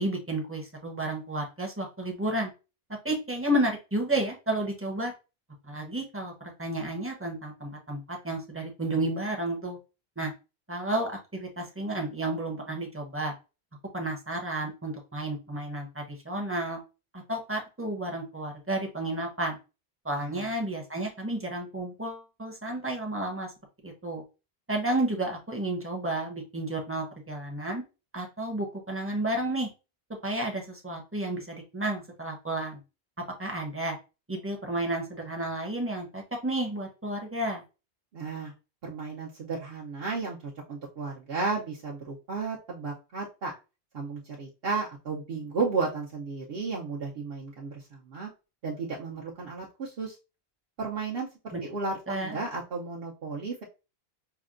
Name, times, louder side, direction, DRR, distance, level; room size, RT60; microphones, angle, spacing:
voice 1, 0.0-2.5 3.0-5.1 5.7-6.3 6.6-9.8 10.2-10.3 10.7-13.3 13.9-16.8 17.3-19.6 20.0-23.5 23.8-24.2 24.7-27.8 28.1-29.7 30.2-32.8 33.4-34.0 34.3-37.6 51.5-51.6 52.1-52.4, right 1 dB, 15° right, 1 dB, 0.7 m, -31 dB
voice 2, 38.1-38.5 38.8-43.5 43.9-48.3 48.6-50.2 50.8-51.3 51.6-53.6, right 4 dB, 65° right, -3 dB, 0.9 m, -33 dB
5.6 x 2.2 x 2.4 m, 0.30 s
omnidirectional pair, 1.1 m